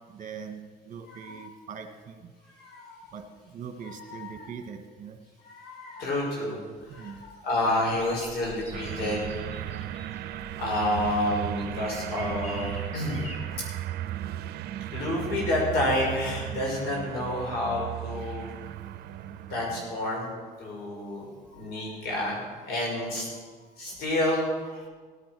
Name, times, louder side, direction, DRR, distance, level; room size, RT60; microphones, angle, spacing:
voice 1, 0.1-2.3 3.1-5.2 6.9-7.2, right 6 dB, 50° right, 6 dB, 1.5 m, -42 dB
voice 2, 1.1-1.4 2.5-3.0 3.8-4.5 5.4-6.6 6.8-9.3 10.6-13.7 14.9-18.5 19.5-20.3 20.6-23.3 23.8-24.9, left 1 dB, 70° left, -2 dB, 5.9 m, -30 dB
sound 1, 7.9-13.4, equal, 40° left, 3.4 m, -46 dB
sound 2, 8.7-20.1, right 12 dB, 75° right, 0.7 m, -36 dB
16.5 x 10.0 x 6.1 m, 1.5 s
cardioid pair, 110°, 17 cm